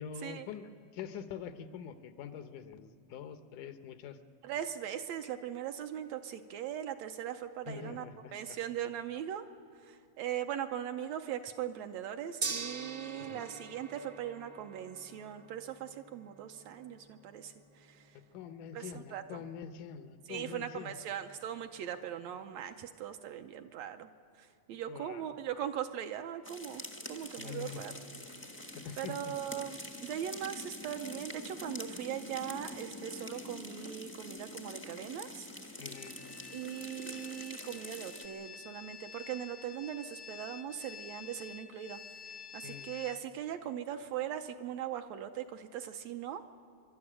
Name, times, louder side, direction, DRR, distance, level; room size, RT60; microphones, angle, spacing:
voice 1, 0.0-4.2 7.7-8.6 13.2-13.4 18.3-21.0 24.7-25.3 27.4-27.9 28.7-29.3 35.8-36.2 42.6-42.9, left 7 dB, 85° left, 9 dB, 2.5 m, -45 dB
voice 2, 4.4-8.0 8.3-9.4 9.8-17.5 17.8-18.1 18.7-19.2 20.3-24.1 24.4-26.8 27.1-27.9 29.0-35.5 36.5-42.0 42.5-46.5, right 10 dB, 75° right, 7 dB, 1.8 m, -40 dB
Gong, 12.4-22.6, right 5 dB, 60° right, 0.9 m, -46 dB
sound 1, 26.4-38.3, left 1 dB, 15° left, 0.3 m, -45 dB
sound 2, 36.0-43.2, left 7 dB, 70° left, 1.4 m, -49 dB
24.5 x 12.5 x 9.9 m, 2.4 s
omnidirectional pair, 3.4 m